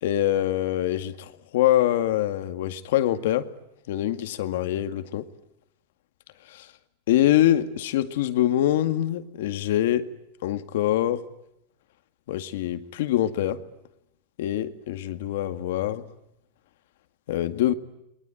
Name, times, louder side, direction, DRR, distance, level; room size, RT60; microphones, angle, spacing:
voice 1, 0.0-3.5 3.9-5.3 6.5-6.7 7.1-10.1 10.4-11.2 12.3-13.6 14.4-16.0 17.3-17.7, left 12 dB, 75° left, 2.1 m, -24 dB
29.5 x 22.5 x 9.1 m
supercardioid pair, 160°, 0 cm